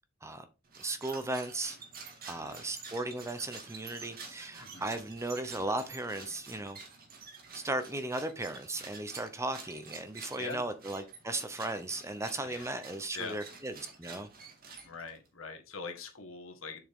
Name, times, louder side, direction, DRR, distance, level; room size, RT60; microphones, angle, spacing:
sound 1, 0.6-15.3, right 4 dB, 45° right, 2.0 m, -49 dB
voice 1, 0.8-1.8 2.3-6.8 7.5-14.3, right 2 dB, 15° right, 0.7 m, -36 dB
voice 2, 2.4-2.7 4.6-4.9 10.4-10.6 12.4-12.7 13.1-13.4 14.8-16.8, left 4 dB, 70° left, 1.8 m, -42 dB
7.1 x 6.1 x 3.7 m
head